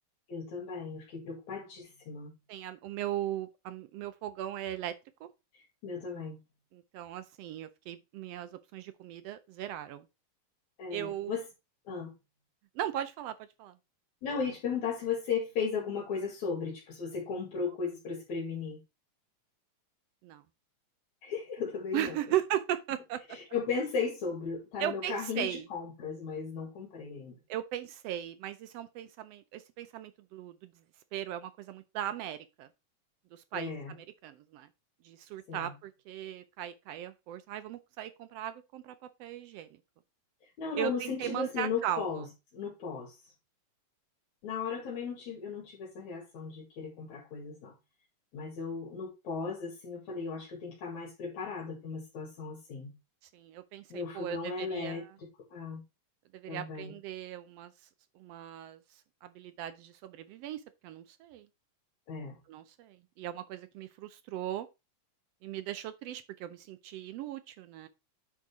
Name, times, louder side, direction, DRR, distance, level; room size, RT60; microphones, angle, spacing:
voice 1, 0.3-2.3 5.8-6.4 10.8-11.4 11.9-12.1 14.2-18.8 21.2-22.2 23.3-27.4 33.5-33.9 35.5-35.7 40.6-42.3 42.5-43.2 44.4-47.7 48.3-52.9 53.9-55.0 55.5-55.8 56.5-57.0 62.1-62.4, left 5 dB, 70° left, 3.4 m, -36 dB
voice 2, 2.5-4.9 5.2-5.3 6.7-10.0 10.9-11.4 12.8-13.7 20.2-20.4 21.9-23.2 24.8-25.7 27.5-30.7 31.1-32.7 33.3-34.7 35.0-39.7 40.8-42.2 53.3-55.1 56.3-57.7 58.2-58.8 59.2-61.5 62.5-64.7 65.4-67.9, right 12 dB, 80° right, 1.4 m, -38 dB
9.3 x 3.8 x 4.8 m
omnidirectional pair, 3.4 m